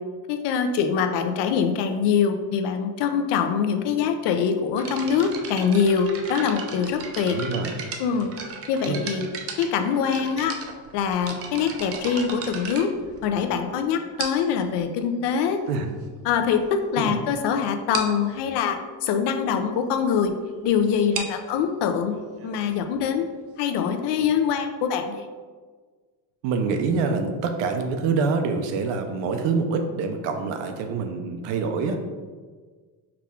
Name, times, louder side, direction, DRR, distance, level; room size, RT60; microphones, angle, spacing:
voice 1, 0.3-7.4 8.0-8.3 8.7-9.3 9.6-10.6 10.9-12.9 13.2-15.6 16.2-20.3 20.6-22.1 22.4-23.3 23.6-25.3, left 7 dB, 75° left, 6 dB, 0.5 m, -24 dB
sound 1, 4.8-13.6 14.2-14.6 15.4-15.5 16.2-16.3 16.5-16.7 17.1-17.2 17.4-17.5 17.9-18.2 20.9-24.4, right 5 dB, 35° right, 0.4 m, -37 dB
voice 2, 7.3-7.7 8.9-9.0 15.7-15.9 17.0-17.2 26.4-32.0, right 4 dB, 90° right, 6 dB, 0.6 m, -26 dB
4.7 x 2.3 x 3.5 m, 1.5 s
cardioid pair, 140°, 42 cm